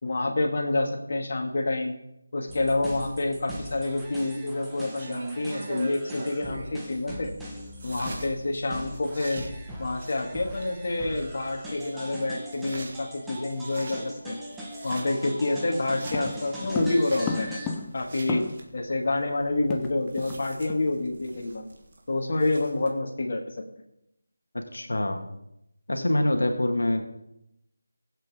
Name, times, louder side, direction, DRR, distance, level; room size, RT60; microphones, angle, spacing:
voice 1, 0.0-1.9 2.3-7.3 7.8-9.4 9.8-14.4 14.8-17.6 17.9-18.5 18.7-21.7 22.1-23.6, left 2 dB, 50° left, 0 dB, 2.2 m, -28 dB
sound 1, 2.5-17.8, equal, 5° right, 1.3 m, -40 dB
sound 2, 4.7-22.9, right 3 dB, 40° right, 1.8 m, -45 dB
Footsteps leaving room - tiles, 16.1-18.8 19.1-19.2 19.4-20.4 20.7-20.9 21.3-21.5, left 5 dB, 10° left, 0.7 m, -34 dB
voice 2, 24.5-25.2 25.9-27.0, left 1 dB, 80° left, 4 dB, 1.8 m, -25 dB
20.5 x 7.9 x 3.7 m, 0.84 s
figure-of-eight pair, 165°, 0 cm